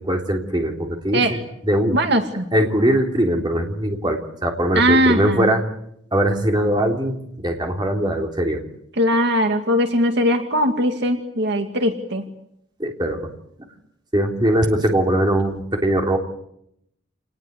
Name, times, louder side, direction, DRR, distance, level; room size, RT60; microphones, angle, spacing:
voice 1, 0.0-2.0 2.5-5.6 6.1-8.6 12.8-13.3 14.1-16.2, right 1 dB, 20° right, 2 dB, 3.5 m, -21 dB
voice 2, 1.9-2.5 4.8-5.5 9.0-12.2, equal, 60° right, 5 dB, 2.3 m, -19 dB
28.0 x 20.0 x 8.3 m, 0.76 s
head